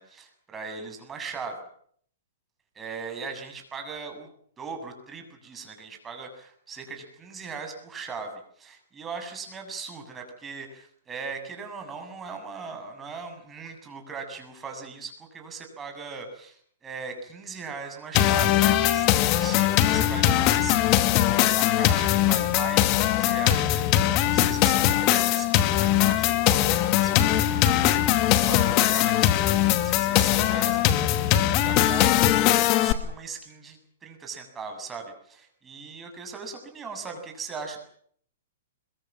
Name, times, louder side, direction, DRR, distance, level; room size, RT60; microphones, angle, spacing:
voice 1, 0.0-1.6 2.8-4.3 4.6-37.8, right 5 dB, 15° right, 4 dB, 7.2 m, -39 dB
sound 1, 18.1-32.9, left 13 dB, 35° left, 2.2 m, -21 dB
26.5 x 22.5 x 7.5 m, 0.62 s
hypercardioid pair, 145°, 0 cm